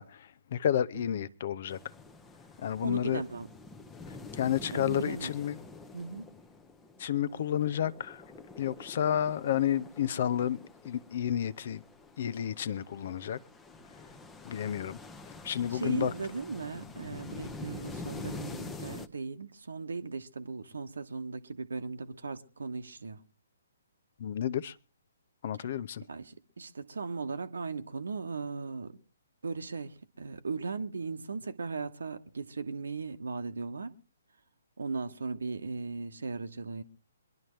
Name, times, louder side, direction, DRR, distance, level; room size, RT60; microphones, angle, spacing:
voice 1, 0.0-1.8 2.6-3.2 4.3-5.6 7.0-8.2 8.6-10.6 10.8-11.8 12.2-13.4 14.4-15.0 15.4-16.1 24.2-24.7 25.4-26.0, left 10 dB, 45° left, 0.7 m, -31 dB
sound 1, 1.7-19.1, left 3 dB, 10° left, 0.9 m, -47 dB
voice 2, 2.8-3.5 4.7-5.3 5.9-6.3 15.7-23.2 26.1-29.0 29.4-34.0 34.8-36.8, right 4 dB, 65° right, 1.1 m, -37 dB
24.5 x 11.5 x 3.1 m
figure-of-eight pair, 130°, 0 cm